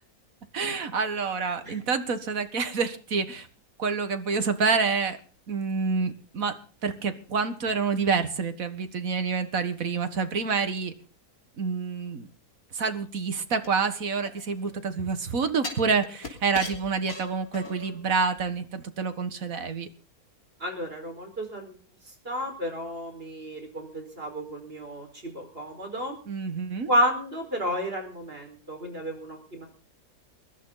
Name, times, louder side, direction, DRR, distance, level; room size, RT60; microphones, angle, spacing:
voice 1, 0.5-3.5 3.8-5.2 5.5-6.5 6.8-10.9 11.6-12.3 12.7-19.9 26.3-26.9, right 5 dB, 65° right, 9 dB, 2.1 m, -28 dB
sound 1, 13.6-14.8 15.6-18.0 18.4-18.5, left 2 dB, 70° left, 3.7 m, -39 dB
voice 2, 20.6-21.7 22.2-26.2 26.9-29.7, equal, 40° right, 4 dB, 5.1 m, -31 dB
22.5 x 12.0 x 4.0 m, 0.40 s
omnidirectional pair, 1.6 m